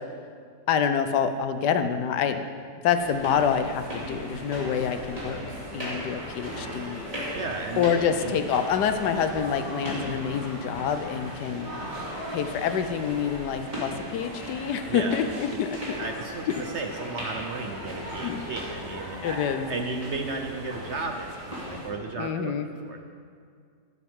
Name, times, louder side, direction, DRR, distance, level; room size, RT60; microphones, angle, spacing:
voice 1, 0.7-2.4 2.8-5.4 5.7-7.0 7.8-11.7 12.3-16.0 16.5-16.6 18.2-18.4 19.2-19.7 22.2-22.7, left 7 dB, 80° left, 8 dB, 1.3 m, -27 dB
sound 1, 2.9-21.9, equal, 20° right, 2.7 m, -37 dB
voice 2, 7.3-8.4 14.9-15.2 16.0-19.4 19.7-22.5 22.8-23.0, right 3 dB, 55° right, 3 dB, 0.9 m, -34 dB
12.0 x 12.0 x 3.6 m, 2.1 s
omnidirectional pair, 1.8 m